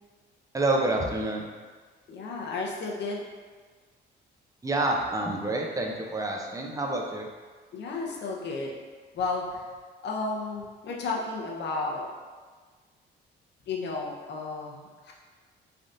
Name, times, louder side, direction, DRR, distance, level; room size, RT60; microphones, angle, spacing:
voice 1, 0.5-1.5 4.6-7.3, right 2 dB, 15° right, 0 dB, 0.5 m, -28 dB
voice 2, 2.1-3.2 7.7-8.7 9.1-9.6 10.0-12.1 13.7-15.1, left 3 dB, 60° left, -1 dB, 0.6 m, -33 dB
3.3 x 2.5 x 2.6 m, 1.5 s
cardioid pair, 90°, 20 cm